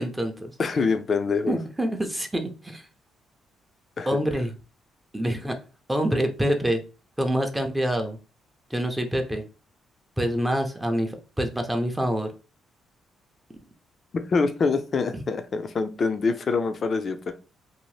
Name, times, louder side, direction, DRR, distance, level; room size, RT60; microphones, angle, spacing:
voice 1, 0.0-0.5 1.5-2.9 4.1-4.5 5.1-5.6 5.9-6.8 7.2-8.2 8.7-9.4 10.2-12.3 15.1-15.2, equal, 10° right, 5 dB, 0.5 m, -26 dB
voice 2, 0.6-1.6 4.0-4.2 14.3-17.3, left 4 dB, 45° left, 8 dB, 0.4 m, -25 dB
2.7 x 2.0 x 3.1 m, 0.32 s
cardioid pair, 90°, 0 cm